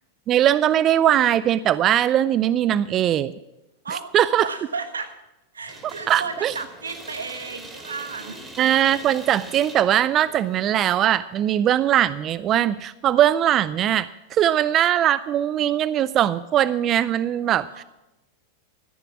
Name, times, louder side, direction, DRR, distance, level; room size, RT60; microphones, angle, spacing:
voice 1, 0.3-3.3 3.9-4.5 6.1-6.5 8.6-17.8, right 11 dB, 35° right, 17 dB, 0.4 m, -20 dB
voice 2, 4.4-5.1 5.5-8.4 17.7-17.8, right 4 dB, 90° right, 8 dB, 1.4 m, -33 dB
sound 1, 5.7-10.7, right 2 dB, 15° right, 2.4 m, -42 dB
14.0 x 10.0 x 5.9 m, 0.97 s
hypercardioid pair, 100°, 0 cm